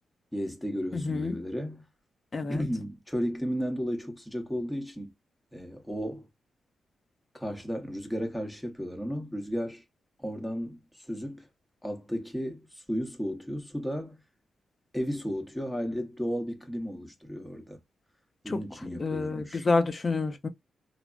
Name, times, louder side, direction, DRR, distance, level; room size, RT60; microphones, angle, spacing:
voice 1, 0.3-1.9 2.5-5.1 5.5-6.3 7.3-9.8 10.2-11.5 11.8-14.2 14.9-17.8 18.4-19.7, equal, 5° left, 0.9 m, -34 dB
voice 2, 0.9-1.4 2.3-2.6 18.5-18.6 18.9-20.5, left 3 dB, 40° left, 0.6 m, -28 dB
3.2 x 2.0 x 2.4 m
cardioid pair, 80°, 0 cm